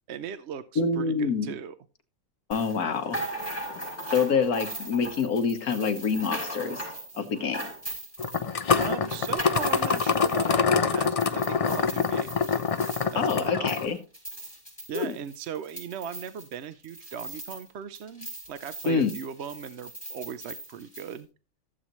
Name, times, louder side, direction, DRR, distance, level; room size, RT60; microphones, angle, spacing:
voice 1, 0.1-1.7 8.8-12.6 13.1-13.7 14.9-21.3, right 8 dB, 60° right, 13 dB, 0.8 m, -38 dB
voice 2, 0.8-1.5 2.5-3.2 4.1-6.8 7.1-7.6 13.1-14.0 14.9-15.1 18.9-19.1, left 5 dB, 85° left, 8 dB, 1.7 m, -26 dB
sound 1, 2.5-17.7 17.9-21.2, right 1 dB, 10° left, 6.6 m, -39 dB
sound 2, 8.2-13.9, left 5 dB, 55° left, 0.4 m, -25 dB
15.0 x 7.9 x 3.1 m, 0.33 s
omnidirectional pair, 1.5 m